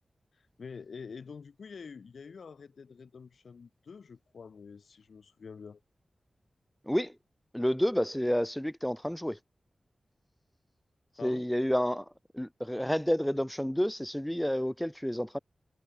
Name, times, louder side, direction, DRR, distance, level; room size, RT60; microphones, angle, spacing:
voice 1, 0.3-5.8 11.2-11.5, left 5 dB, 80° left, 6.4 m, -47 dB
voice 2, 7.5-9.4 11.2-12.0 12.3-15.4, equal, 5° left, 1.4 m, -29 dB
wide cardioid pair, 105°, 0 cm